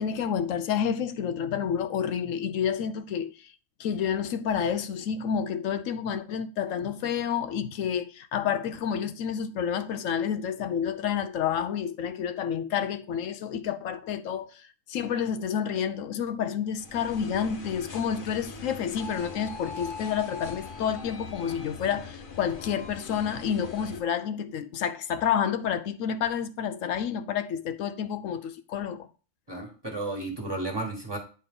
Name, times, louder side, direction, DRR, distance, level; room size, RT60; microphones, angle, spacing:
voice 1, 0.0-3.5 3.8-29.1, left 8 dB, 80° left, 1.0 m, -29 dB
sound 1, 16.7-24.0, left 4 dB, 45° left, 1.1 m, -41 dB
voice 2, 29.5-31.2, right 2 dB, 20° right, 1.6 m, -33 dB
9.3 x 4.3 x 3.7 m
omnidirectional pair, 1.4 m